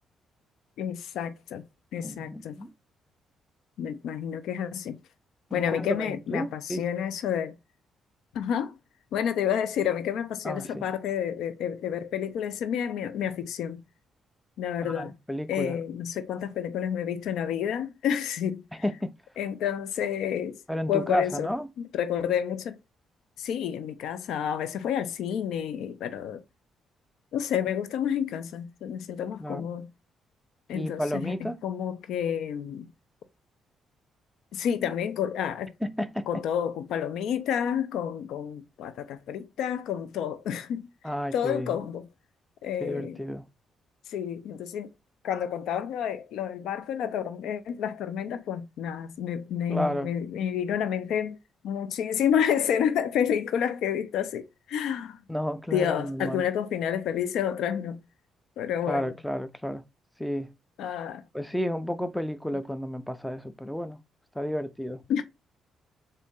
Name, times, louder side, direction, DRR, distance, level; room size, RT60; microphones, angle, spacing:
voice 1, 0.8-1.6 1.9-2.5 3.8-5.0 5.5-7.6 8.3-8.8 9.1-13.8 14.6-15.1 15.5-18.8 19.4-20.6 20.9-21.5 21.8-22.8 23.4-26.4 27.3-29.9 30.7-32.9 34.5-35.7 36.3-40.9 41.3-42.1 42.6-43.2 44.1-44.9 45.2-51.4 51.6-55.2 55.7-58.0 58.6-59.2 60.8-61.2 65.1-65.2, left 9 dB, 80° left, 0.5 m, -30 dB
voice 2, 2.0-2.7 5.5-6.8 10.4-10.8 14.8-15.8 18.8-19.1 20.7-21.7 29.4-29.7 30.7-31.6 35.8-36.3 41.0-41.7 42.8-43.5 49.7-50.1 55.3-56.4 58.9-59.8 60.2-60.5 61.3-64.0 64.3-65.0, equal, 5° left, 0.5 m, -31 dB
4.0 x 2.7 x 3.6 m
cardioid pair, 90°, 0 cm